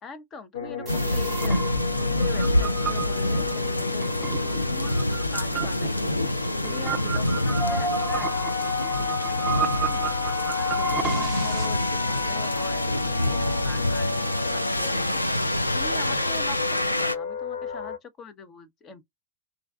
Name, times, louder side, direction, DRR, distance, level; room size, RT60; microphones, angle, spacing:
voice 1, 0.0-6.2 6.6-9.5 9.9-10.1 10.6-15.2 15.7-19.0, left 4 dB, 25° left, 0.6 m, -43 dB
sound 1, 0.5-18.0, left 5 dB, 65° left, 0.7 m, -33 dB
sound 2, 0.9-17.2, left 1 dB, 85° left, 0.3 m, -26 dB
sound 3, 0.9-11.7, right 8 dB, 25° right, 0.3 m, -34 dB
2.5 x 2.2 x 2.2 m
figure-of-eight pair, 90°, 0 cm